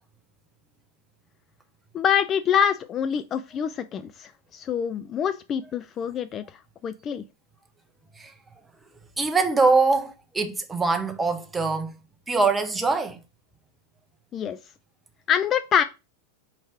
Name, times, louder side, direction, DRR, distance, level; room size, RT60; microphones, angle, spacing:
voice 1, 1.9-7.2 14.3-14.6 15.3-15.8, left 8 dB, 25° left, 0.5 m, -25 dB
voice 2, 9.2-11.9 12.3-13.2, right 3 dB, 10° right, 0.9 m, -23 dB
4.9 x 4.5 x 4.4 m
figure-of-eight pair, 90°, 0 cm